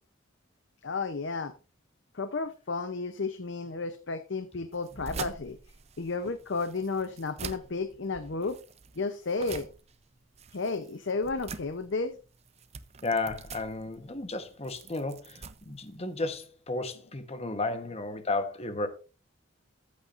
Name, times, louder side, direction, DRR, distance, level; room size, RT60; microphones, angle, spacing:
voice 1, 0.8-1.5 2.1-5.6 6.0-8.6 9.0-9.7 10.5-12.2, left 3 dB, 60° left, 0.7 m, -32 dB
sound 1, 4.7-16.5, right 5 dB, 30° right, 0.5 m, -45 dB
voice 2, 13.0-18.9, left 2 dB, 30° left, 1.1 m, -33 dB
14.0 x 8.6 x 2.5 m
head